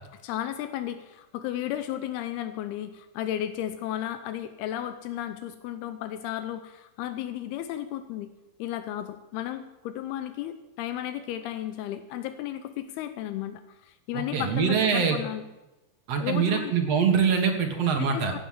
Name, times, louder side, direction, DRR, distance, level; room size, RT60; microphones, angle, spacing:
voice 1, 0.2-8.3 8.6-15.5 16.2-16.7 18.0-18.4, left 12 dB, 85° left, 10 dB, 2.7 m, -34 dB
voice 2, 14.1-15.2 16.1-18.3, right 6 dB, 55° right, 3 dB, 2.0 m, -24 dB
16.0 x 9.3 x 7.5 m, 1.0 s
omnidirectional pair, 4.5 m